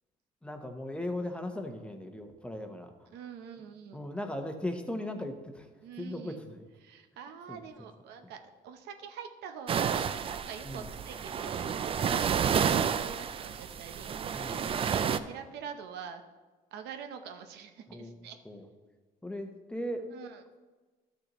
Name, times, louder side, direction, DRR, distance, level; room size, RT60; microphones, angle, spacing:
voice 1, 0.4-2.9 3.9-5.7 6.0-6.6 7.5-7.6 10.6-10.9 14.3-14.6 17.9-18.2 18.4-18.6 19.2-20.1, left 1 dB, 5° left, 5 dB, 0.8 m, -38 dB
voice 2, 3.1-4.0 5.8-6.4 6.8-12.4 12.6-16.2 16.7-18.4 20.1-20.4, right 7 dB, 80° right, 6 dB, 0.8 m, -45 dB
sound 1, 9.7-15.2, right 7 dB, 35° right, 0.4 m, -30 dB
12.0 x 6.5 x 3.0 m, 1.3 s
cardioid pair, 110°, 17 cm